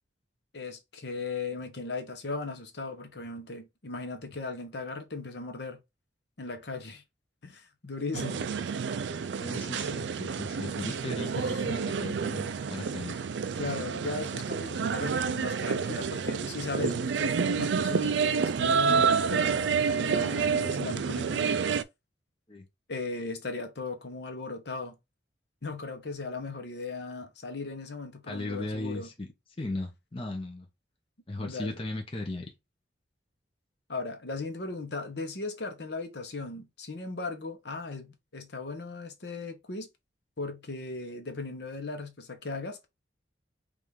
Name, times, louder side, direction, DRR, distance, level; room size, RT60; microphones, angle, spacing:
voice 1, 0.5-5.8 6.4-7.0 7.4-8.5 11.3-11.8 12.5-12.6 13.5-21.6 22.9-24.9 25.6-29.1 31.4-31.7 33.9-39.9 40.4-42.9, left 3 dB, 60° left, 0.9 m, -37 dB
sound 1, 8.1-21.8, right 6 dB, 70° right, 0.4 m, -29 dB
voice 2, 9.4-13.2 22.5-22.7 28.3-29.3 29.6-30.7 31.3-32.5, left 2 dB, 30° left, 0.7 m, -37 dB
4.8 x 2.5 x 3.5 m
head